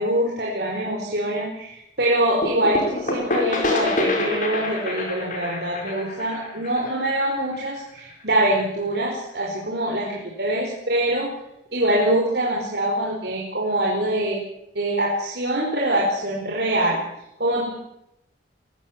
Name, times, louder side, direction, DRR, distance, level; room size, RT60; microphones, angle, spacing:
voice 1, 0.0-11.3 11.7-14.4 14.7-17.0 17.4-17.8, right 1 dB, 60° right, -3 dB, 5.1 m, -24 dB
sound 1, 2.4-8.0, left 2 dB, 45° left, 4.8 m, -27 dB
22.5 x 15.0 x 9.0 m, 0.80 s
head